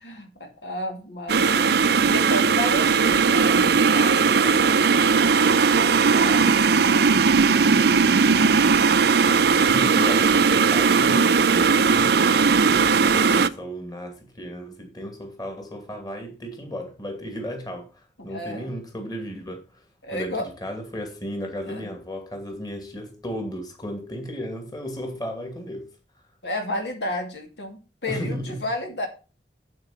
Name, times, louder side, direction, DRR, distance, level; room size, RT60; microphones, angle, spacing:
voice 1, 0.0-5.2 5.6-7.4 18.2-18.7 20.0-20.5 21.7-21.9 26.4-29.1, left 1 dB, 70° left, 2.6 m, -33 dB
sound 1, 1.3-13.5, right 5 dB, 65° right, 0.6 m, -18 dB
voice 2, 9.7-12.3 12.6-19.8 20.1-20.3 20.6-25.9 26.1-26.2 28.0-28.6, equal, 25° left, 2.5 m, -34 dB
8.9 x 8.0 x 4.3 m
head